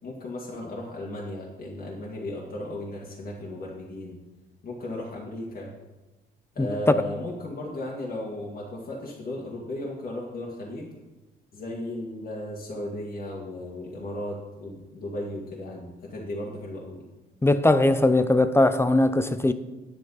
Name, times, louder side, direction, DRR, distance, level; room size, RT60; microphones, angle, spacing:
voice 1, 0.0-4.2 4.6-5.7 6.5-10.9 11.5-17.1, left 1 dB, 45° left, 2.0 m, -35 dB
voice 2, 17.4-19.5, left 2 dB, 10° left, 0.5 m, -20 dB
9.1 x 8.3 x 4.0 m
cardioid pair, 90°, 20 cm